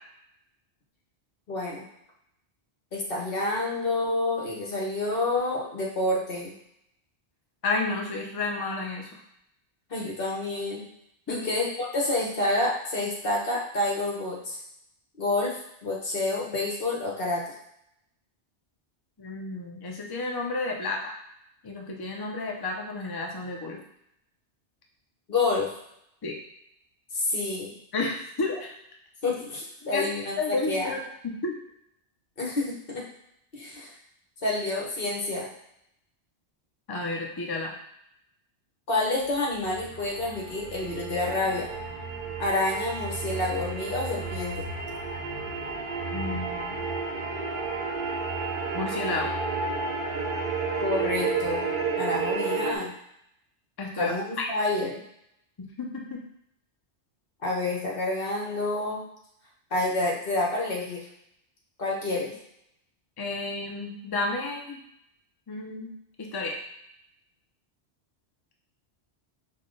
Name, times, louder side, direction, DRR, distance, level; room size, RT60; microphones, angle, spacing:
voice 1, 1.5-1.9 2.9-6.5 9.9-10.9 11.3-14.6 15.2-17.5 25.3-25.7 27.1-27.7 29.2-30.9 32.4-33.0 33.5-33.9 34.4-35.5 38.9-41.7 42.4-44.7 50.8-51.7 51.9-52.9 54.0-55.0 57.4-59.0 59.7-61.0 61.8-62.3, left 2 dB, 55° left, -4 dB, 1.3 m, -28 dB
voice 2, 7.6-9.1 11.3-11.4 19.2-21.1 21.6-23.8 26.2-26.4 27.9-28.7 29.9-30.1 30.4-31.5 36.9-37.8 46.1-46.8 48.7-49.4 53.8-54.5 55.6-56.2 63.2-64.8 65.5-65.9 66.2-66.6, left 3 dB, 30° left, 0 dB, 0.5 m, -31 dB
sound 1, 39.3-52.8, right 4 dB, 55° right, 0.8 m, -31 dB
5.5 x 2.2 x 3.8 m, 0.77 s
omnidirectional pair, 1.1 m